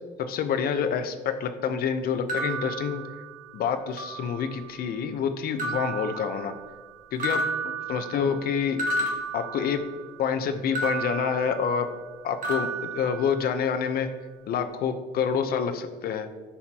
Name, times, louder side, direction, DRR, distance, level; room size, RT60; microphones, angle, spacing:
voice 1, 0.3-3.0 3.5-6.5 7.1-8.8 9.3-9.8 10.2-11.9 12.2-14.1 14.5-16.3, left 7 dB, 60° left, 8 dB, 0.8 m, -27 dB
sound 1, 2.3-3.6 4.0-4.7 5.6-6.9 7.2-10.1 10.7-12.1 12.4-13.8, right 2 dB, 55° right, 1.4 m, -33 dB
14.0 x 5.7 x 2.9 m, 1.4 s
cardioid pair, 110°, 17 cm